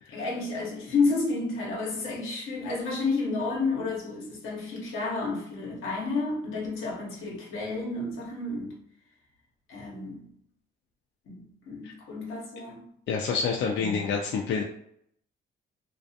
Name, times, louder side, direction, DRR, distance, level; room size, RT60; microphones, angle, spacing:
voice 1, 0.1-8.8 9.7-10.3 11.3-12.9 13.8-14.0, left 3 dB, 90° left, 0.9 m, -31 dB
voice 2, 13.1-14.6, left 5 dB, 65° left, 0.4 m, -27 dB
2.4 x 2.3 x 2.6 m
cardioid pair, 90°, 20 cm